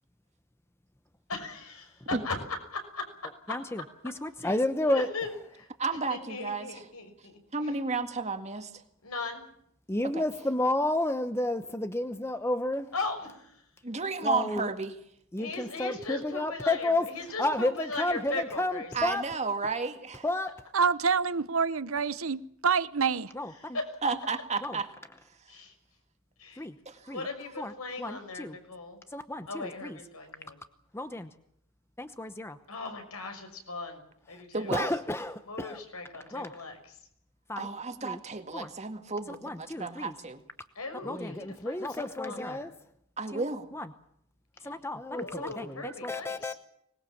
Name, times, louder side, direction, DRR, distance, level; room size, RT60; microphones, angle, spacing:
voice 1, 1.3-1.8 2.2-2.3 2.9-3.1 4.4-4.5 4.8-5.7 6.1-7.7 9.0-9.5 12.9-13.6 15.4-19.1 23.6-23.9 25.5-25.7 26.4-26.7 27.1-29.0 29.5-30.6 32.7-34.0 34.3-34.8 35.5-37.0 40.7-42.7 44.6-44.7 45.1-46.6, left 3 dB, 80° left, 6.0 m, -38 dB
voice 2, 3.5-5.1 9.9-12.9 14.2-14.7 15.3-17.1 17.4-19.3 20.2-20.5 23.3-23.8 24.6-24.8 26.6-26.8 27.1-27.2 27.6-27.7 28.0-28.6 29.1-30.0 30.9-31.3 32.0-32.6 34.7-35.8 36.3-36.6 37.5-37.7 38.0-38.2 38.5-38.7 39.4-40.1 41.0-42.7 43.3-43.4 43.7-43.9 44.6-46.5, left 1 dB, 10° left, 0.9 m, -31 dB
voice 3, 5.8-6.9 7.5-8.8 10.1-10.2 13.8-15.0 18.9-20.3 24.0-24.9 25.4-25.6 26.9-27.1 34.5-34.9 37.6-40.4 43.2-43.7, right 4 dB, 30° right, 2.0 m, -32 dB
voice 4, 20.7-23.3, right 5 dB, 65° right, 0.9 m, -27 dB
25.0 x 20.5 x 7.2 m
head